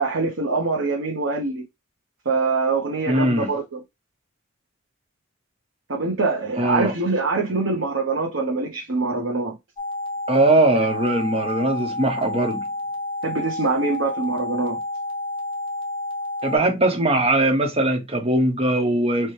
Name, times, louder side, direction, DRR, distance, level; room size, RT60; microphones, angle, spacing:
voice 1, 0.0-1.6 2.2-3.8 5.9-9.6 13.2-14.8, right 3 dB, 80° right, 0.9 m, -24 dB
voice 2, 3.1-3.5 6.6-6.9 10.3-12.7 16.4-19.3, right 1 dB, 30° right, 0.9 m, -20 dB
sound 1, 9.8-16.6, left 2 dB, 25° left, 0.9 m, -30 dB
4.4 x 2.2 x 3.2 m
head